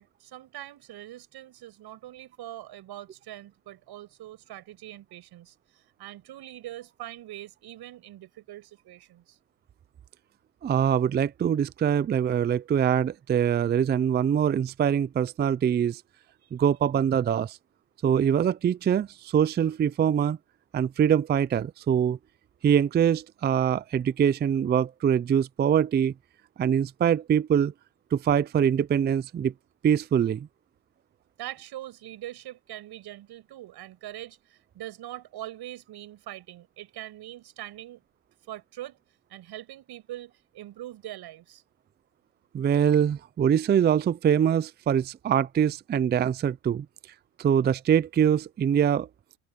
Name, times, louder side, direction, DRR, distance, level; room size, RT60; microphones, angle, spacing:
voice 1, 0.0-9.4 16.4-16.5 31.4-38.0 38.5-39.0 39.3-41.6, right 14 dB, 55° right, 7.3 m, -42 dB
voice 2, 10.6-16.0 16.5-17.6 18.0-20.4 20.7-22.2 22.6-26.1 26.6-27.7 28.1-29.5 29.8-30.5 42.5-46.9 47.4-49.1, right 8 dB, 25° right, 0.5 m, -23 dB
open air
supercardioid pair, 90°, 45 cm